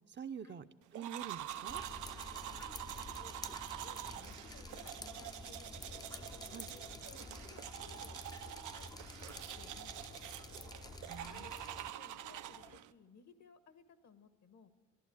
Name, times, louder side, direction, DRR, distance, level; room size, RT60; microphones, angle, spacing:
voice 1, 0.1-0.7 0.9-1.8 6.5-6.7 11.0-11.5, right 7 dB, 35° right, 9 dB, 0.6 m, -46 dB
sound 1, 0.9-12.9, right 13 dB, 80° right, 0.6 m, -46 dB
sound 2, 1.2-12.8, left 5 dB, 80° left, 1.7 m, -60 dB
Drip, 1.7-11.9, left 2 dB, 15° left, 0.5 m, -50 dB
voice 2, 2.6-6.0 6.7-10.2 11.2-14.7, left 5 dB, 65° left, 10 dB, 1.4 m, -60 dB
14.5 x 11.0 x 8.6 m, 1.3 s
cardioid pair, 90°, 30 cm